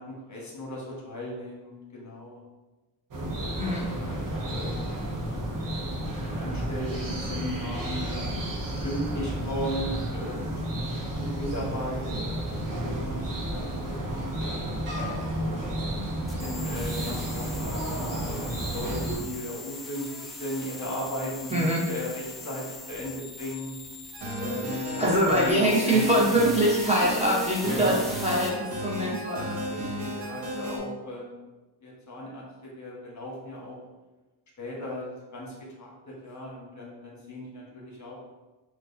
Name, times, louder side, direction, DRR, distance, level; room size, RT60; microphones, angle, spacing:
voice 1, 0.0-2.4 3.3-4.9 5.2-5.5 5.8-8.3 8.8-10.5 11.1-14.2 15.5-15.8 16.3-23.8 24.4-25.1 25.4-25.6 25.8-26.2 27.7-28.0 29.7-31.4 31.8-33.8 34.6-38.1, left 1 dB, 40° left, -3 dB, 1.2 m, -37 dB
sound 1, 3.1-19.2, right 1 dB, 50° right, 0.9 m, -32 dB
voice 2, 3.6-3.9 21.5-21.8 24.7-29.5, equal, 15° right, -5 dB, 0.8 m, -24 dB
sound 2, 16.3-28.5, left 2 dB, ahead, 0.4 m, -41 dB
sound 3, 24.1-30.8, right 1 dB, 80° right, 1.1 m, -33 dB
4.5 x 2.4 x 2.6 m, 1.1 s
cardioid pair, 95°, 42 cm